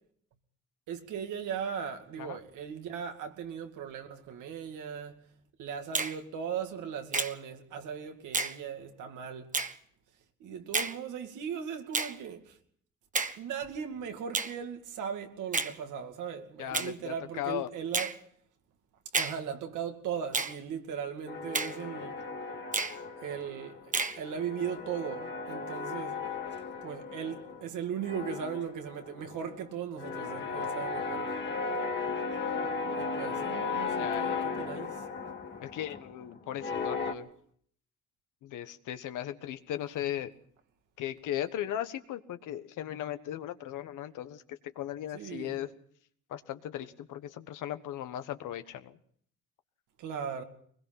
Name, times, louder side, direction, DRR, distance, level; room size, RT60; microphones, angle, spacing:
voice 1, 0.9-5.3 5.6-9.5 10.4-12.6 13.4-18.2 19.2-22.2 23.2-23.8 24.2-26.2 26.8-31.3 32.9-35.1 45.1-45.6 50.0-50.4, right 7 dB, 85° right, 2.4 m, -38 dB
Finger snapping, 5.9-6.2 7.1-7.4 8.3-8.6 9.5-9.7 10.7-11.0 11.9-12.2 13.1-13.4 14.3-14.5 15.5-15.7 16.7-16.9 17.9-18.2 19.1-19.4 20.3-20.6 21.5-21.8 22.7-23.0 23.9-24.2, right 4 dB, 25° right, 1.2 m, -30 dB
voice 2, 16.6-17.7 34.0-34.7 35.6-37.3 38.4-40.3 41.0-45.7 46.3-49.0, left 11 dB, 85° left, 1.3 m, -37 dB
sound 1, 21.3-23.8 24.1-27.7 28.0-37.1, left 4 dB, 35° left, 2.2 m, -36 dB
23.0 x 21.0 x 5.9 m
cardioid pair, 90°, 30 cm